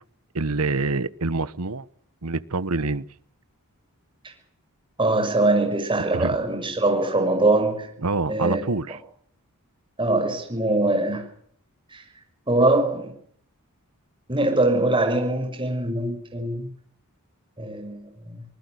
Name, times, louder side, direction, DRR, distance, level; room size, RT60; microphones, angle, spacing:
voice 1, 0.3-1.8 2.2-3.0 6.1-6.3 8.0-9.0, right 3 dB, 80° right, 1.2 m, -26 dB
voice 2, 5.0-7.9 8.3-9.0 10.0-11.2 11.9-12.0 12.5-13.1 14.3-16.7 17.6-18.4, right 2 dB, 25° right, 6.1 m, -23 dB
26.5 x 20.5 x 6.6 m
head